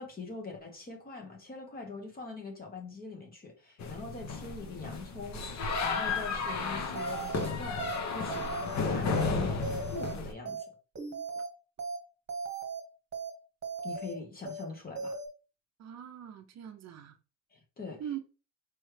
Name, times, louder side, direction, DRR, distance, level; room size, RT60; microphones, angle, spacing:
voice 1, 0.0-10.7 13.8-15.2 17.5-18.2, left 4 dB, 25° left, 1.1 m, -43 dB
sound 1, 3.8-10.3, left 4 dB, 50° left, 0.9 m, -33 dB
sound 2, 7.0-7.5 7.8-8.0 8.3-8.8 9.1-9.3 9.6-10.1 10.5-10.6 11.0-11.5 11.8-12.0 12.3-12.8 13.1-13.3 13.6-14.1 14.5-14.6 15.0-15.3, right 4 dB, 35° right, 1.2 m, -37 dB
voice 2, 15.8-17.2 18.0-18.2, right 10 dB, 50° right, 0.6 m, -41 dB
4.8 x 3.1 x 3.2 m
cardioid pair, 170°, 35 cm